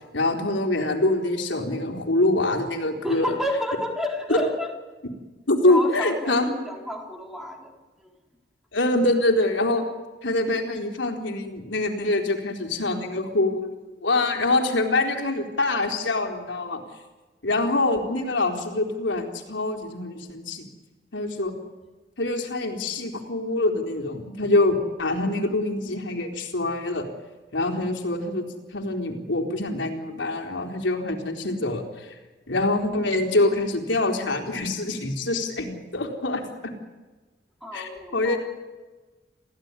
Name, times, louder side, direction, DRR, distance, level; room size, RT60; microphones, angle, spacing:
voice 1, 0.1-3.3 4.3-4.5 5.5-6.4 8.7-9.8 10.2-13.7 14.0-16.8 17.4-20.7 21.1-21.5 22.2-27.1 27.5-32.2 32.5-36.7 37.7-38.4, left 2 dB, 80° left, 2 dB, 4.1 m, -25 dB
voice 2, 3.0-4.7 5.6-7.7 8.0-8.1 37.6-38.4, equal, ahead, 0 dB, 4.0 m, -30 dB
28.5 x 16.0 x 9.9 m, 1.3 s
head